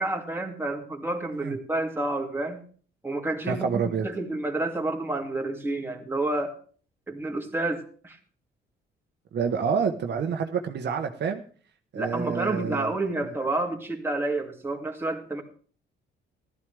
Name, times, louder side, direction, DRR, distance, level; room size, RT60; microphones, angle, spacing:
voice 1, 0.0-2.6 3.0-6.6 7.1-8.2 11.9-15.4, right 2 dB, 10° right, 1 dB, 2.6 m, -29 dB
voice 2, 3.5-4.1 9.3-11.4 11.9-12.9, right 6 dB, 60° right, 5 dB, 1.2 m, -28 dB
15.5 x 13.0 x 3.5 m, 0.43 s
cardioid pair, 90°, 20 cm